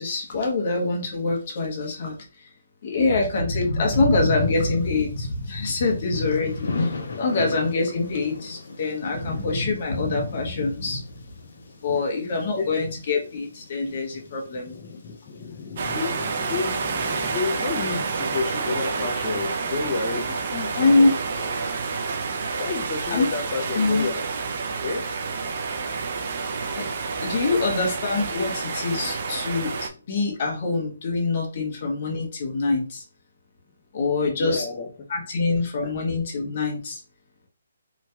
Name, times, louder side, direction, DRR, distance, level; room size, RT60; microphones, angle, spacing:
voice 1, 0.0-2.5 2.8-11.2 11.8-14.7 20.8-21.1 23.1-23.3 23.7-24.1 26.7-26.8 27.2-33.0 33.9-34.7 35.1-37.0, left 3 dB, 45° left, 1.0 m, -24 dB
Thunder / Rain, 4.5-21.3, left 3 dB, 65° left, 0.7 m, -39 dB
voice 2, 13.8-14.3 14.7-21.1 21.4-21.5 22.6-24.3 24.8-25.2 34.4-34.9 35.8-36.0, left 4 dB, 25° left, 0.4 m, -31 dB
sound 1, 15.8-29.9, right 4 dB, 45° right, 0.4 m, -29 dB
2.9 x 2.8 x 2.2 m
hypercardioid pair, 160°, 0 cm